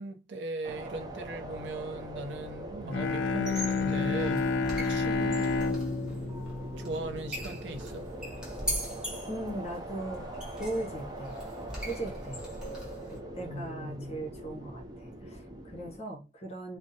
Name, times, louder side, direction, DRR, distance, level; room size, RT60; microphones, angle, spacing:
voice 1, 0.0-5.8 6.8-8.1 13.4-14.2, right 2 dB, 90° right, 0.4 m, -39 dB
sound 1, 0.6-16.0, right 1 dB, 25° right, 0.5 m, -42 dB
Bowed string instrument, 2.8-7.7, left 4 dB, 90° left, 0.3 m, -30 dB
sound 2, 3.3-13.2, equal, 5° right, 0.9 m, -40 dB
voice 2, 9.3-10.3 10.6-11.4 11.8-12.4 13.1-16.8, right 1 dB, 35° left, 0.8 m, -38 dB
2.6 x 2.1 x 2.6 m
head